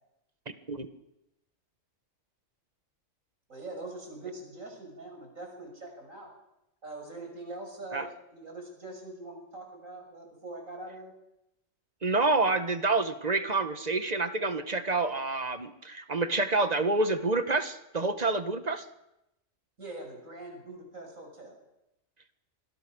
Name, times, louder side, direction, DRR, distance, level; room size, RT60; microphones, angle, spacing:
voice 1, 3.5-6.3 6.8-11.1 19.8-21.6, right 2 dB, 90° right, 2 dB, 6.9 m, -43 dB
voice 2, 12.0-18.8, right 3 dB, 30° right, 10 dB, 1.7 m, -28 dB
26.5 x 21.5 x 6.4 m, 0.87 s
omnidirectional pair, 1.4 m